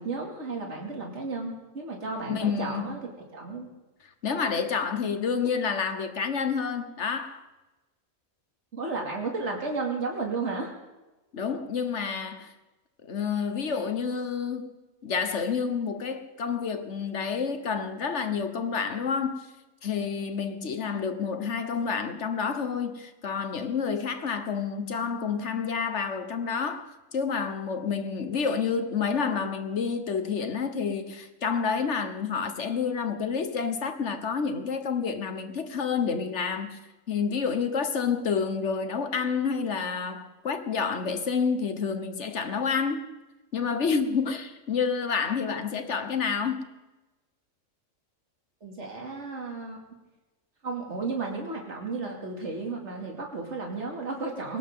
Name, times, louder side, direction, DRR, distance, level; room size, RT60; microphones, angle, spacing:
voice 1, 0.0-3.7 8.7-10.7 48.6-49.8 50.6-54.6, right 3 dB, 55° right, 2.9 m, -33 dB
voice 2, 2.3-2.9 4.2-7.4 11.3-12.5 13.1-14.7 15.0-19.5 19.8-36.8 37.1-43.0 43.5-46.7, left 6 dB, 60° left, 1.5 m, -29 dB
20.5 x 18.0 x 3.8 m
omnidirectional pair, 1.4 m